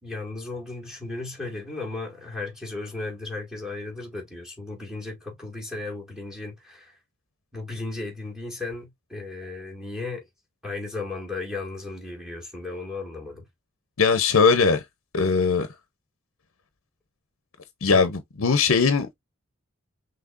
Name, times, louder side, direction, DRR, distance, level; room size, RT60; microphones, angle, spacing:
voice 1, 0.0-6.9 7.5-10.3 10.6-13.4 17.9-18.0, left 3 dB, 5° right, 2.1 m, -35 dB
voice 2, 14.0-14.8 15.1-15.7 17.8-19.1, left 5 dB, 70° left, 0.8 m, -20 dB
5.9 x 3.3 x 2.5 m
head